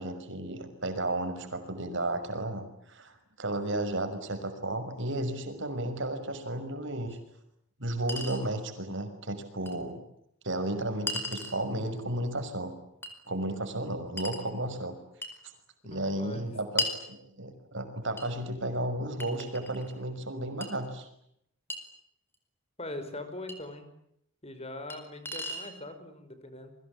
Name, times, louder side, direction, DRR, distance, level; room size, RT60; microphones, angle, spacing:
voice 1, 0.0-7.2 7.8-10.0 10.4-12.7 13.3-15.0 15.8-21.1, right 1 dB, 60° right, 8 dB, 6.1 m, -33 dB
Chink clink, 7.1-7.2 8.1-8.4 9.7-9.8 11.1-11.6 13.0-13.2 14.2-14.5 15.2-15.4 16.8-17.0 18.2-18.3 19.2-19.9 20.6-20.7 21.7-21.8 23.5-23.6 24.9-25.0 25.2-25.7, left 2 dB, 10° left, 5.0 m, -35 dB
voice 2, 15.9-16.4 22.8-23.9 24.4-26.8, left 2 dB, 30° left, 9 dB, 5.4 m, -41 dB
29.0 x 23.5 x 8.7 m, 0.74 s
head